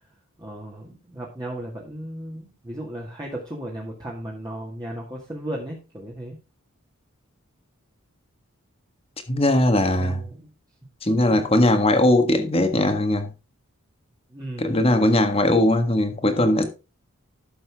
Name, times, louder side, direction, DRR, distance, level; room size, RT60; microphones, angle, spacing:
voice 1, 0.4-6.4 9.7-10.5 11.3-11.5 14.3-14.8, right 1 dB, 20° right, 2.0 m, -35 dB
voice 2, 9.3-10.2 11.0-13.3 14.6-16.7, left 1 dB, 25° left, 1.5 m, -19 dB
12.5 x 7.0 x 3.6 m
head